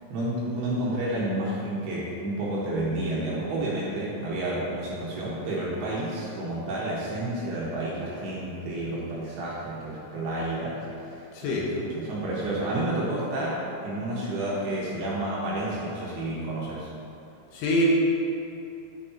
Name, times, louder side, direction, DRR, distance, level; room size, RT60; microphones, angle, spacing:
voice 1, 0.1-16.9, right 1 dB, 70° right, -7 dB, 2.8 m, -30 dB
voice 2, 11.3-11.7 17.5-17.9, equal, 75° left, -3 dB, 3.2 m, -24 dB
9.4 x 9.4 x 2.8 m, 2.8 s
omnidirectional pair, 5.6 m